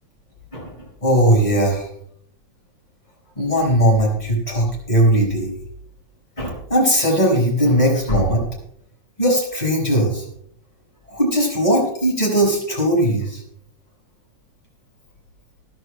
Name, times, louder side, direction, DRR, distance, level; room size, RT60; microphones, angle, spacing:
voice 1, 1.0-1.9 3.4-5.5 6.4-8.4 9.2-10.2 11.1-13.4, equal, 10° left, -2 dB, 5.2 m, -18 dB
21.5 x 11.0 x 2.2 m, 0.67 s
omnidirectional pair, 3.6 m